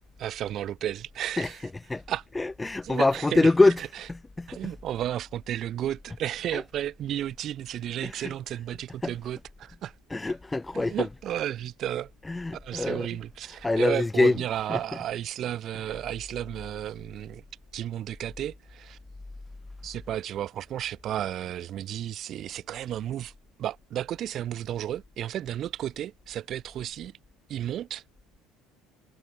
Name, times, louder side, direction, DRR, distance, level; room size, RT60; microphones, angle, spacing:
voice 1, 0.2-1.6 2.1-2.2 2.8-3.5 4.5-9.9 10.3-10.4 10.7-12.1 12.5-17.4 17.7-19.0 19.8-23.3 23.6-27.1 27.5-28.0, right 11 dB, 45° right, 1.0 m, -33 dB
voice 2, 2.3-3.8 4.1-4.7 6.5-6.6 8.0-8.3 9.0-9.1 10.1-11.1 12.3-13.1 13.6-14.4 14.7-14.8, left 2 dB, 15° left, 1.7 m, -24 dB
figure-of-eight pair, 60°, 0 cm